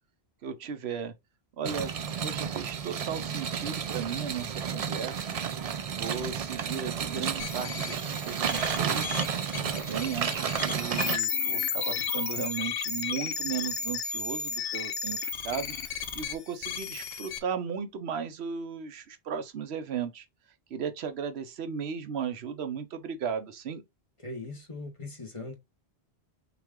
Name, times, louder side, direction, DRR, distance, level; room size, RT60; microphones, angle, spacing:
voice 1, 0.4-1.1 1.6-5.4 5.9-9.2 9.7-20.2 20.7-23.8, right 7 dB, 80° right, 0.9 m, -36 dB
sound 1, 1.6-11.2, right 7 dB, 50° right, 0.4 m, -32 dB
sound 2, 7.4-17.4, left 6 dB, 70° left, 1.0 m, -33 dB
voice 2, 24.2-25.5, left 2 dB, 30° left, 1.1 m, -40 dB
5.8 x 2.4 x 3.6 m
omnidirectional pair, 1.1 m